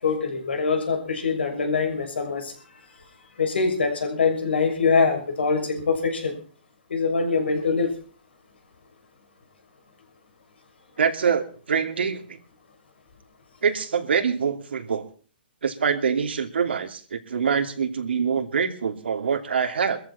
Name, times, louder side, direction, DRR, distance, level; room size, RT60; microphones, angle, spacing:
voice 1, 0.0-2.5 3.4-6.4 6.9-7.9, left 4 dB, 90° left, 5 dB, 6.8 m, -23 dB
voice 2, 11.0-12.4 13.6-15.1 15.6-20.0, right 6 dB, 85° right, 6 dB, 2.9 m, -25 dB
22.5 x 14.5 x 4.3 m, 0.40 s
hypercardioid pair, 150°, 6 cm